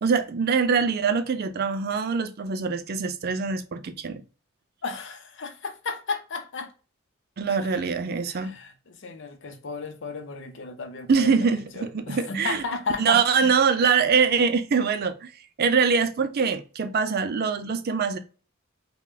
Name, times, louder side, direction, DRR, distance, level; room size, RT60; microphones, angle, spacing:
voice 1, 0.0-4.2 7.4-8.5 11.1-12.6 13.0-15.3 15.6-18.2, right 5 dB, 50° right, 0.4 m, -23 dB
voice 2, 4.8-6.7 7.5-7.8 8.3-13.5, left 4 dB, 60° left, 0.6 m, -34 dB
5.5 x 2.2 x 2.3 m
head